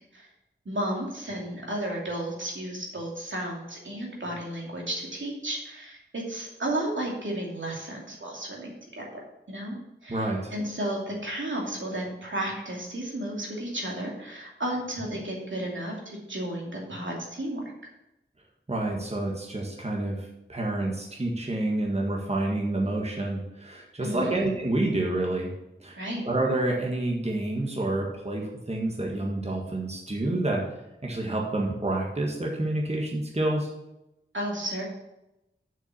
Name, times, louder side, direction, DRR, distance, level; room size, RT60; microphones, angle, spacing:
voice 1, 0.6-9.2 9.5-9.8 10.0-17.6 24.0-24.5 26.0-26.2 34.3-34.8, right 1 dB, 70° right, -2 dB, 2.6 m, -33 dB
voice 2, 10.1-10.5 18.7-25.5 25.8-26.0 26.2-30.6 31.0-33.7, right 2 dB, 30° right, -2 dB, 1.7 m, -28 dB
7.2 x 5.9 x 7.0 m, 0.90 s
wide cardioid pair, 70°, 20 cm